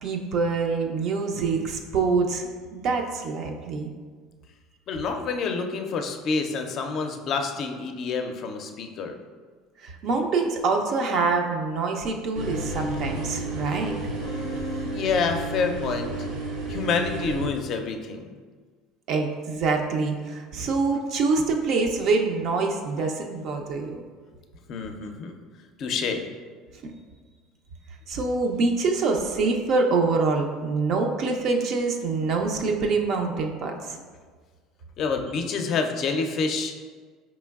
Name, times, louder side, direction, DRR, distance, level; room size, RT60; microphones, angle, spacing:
voice 1, 0.0-3.9 9.8-13.9 19.1-24.0 26.8-26.9 28.1-34.0, right 4 dB, 60° right, 2 dB, 0.4 m, -25 dB
voice 2, 4.9-9.1 14.2-16.1 16.7-18.4 24.7-25.3 25.8-26.3 35.0-36.8, left 4 dB, 55° left, 5 dB, 0.4 m, -28 dB
sound 1, 12.3-17.4, right 2 dB, 85° right, 0.7 m, -32 dB
4.4 x 3.0 x 2.3 m, 1.5 s
supercardioid pair, 95°, 0 cm